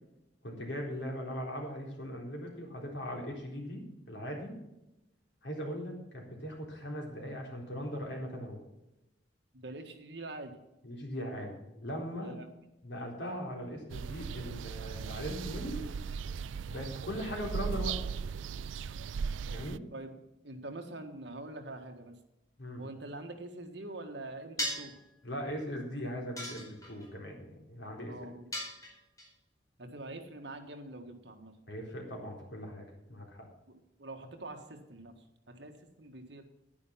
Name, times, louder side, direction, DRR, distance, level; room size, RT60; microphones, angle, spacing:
voice 1, 0.4-4.6 5.4-8.6 10.8-12.3 12.8-15.9 16.7-18.0 19.5-19.8 22.6-22.8 25.2-28.1 31.7-33.5, equal, 70° left, 0 dB, 4.1 m, -39 dB
voice 2, 9.5-10.6 12.2-12.5 19.9-20.1 20.4-22.2 22.8-25.0 28.0-28.5 29.8-31.6 33.7-35.2 35.5-36.4, right 2 dB, 65° right, 5 dB, 1.7 m, -45 dB
sound 1, 13.9-19.8, right 6 dB, 85° right, 0.4 m, -37 dB
sound 2, 24.6-25.0 26.4-27.1 28.5-29.3, equal, 20° left, 4.5 m, -37 dB
10.5 x 10.5 x 5.8 m, 0.93 s
head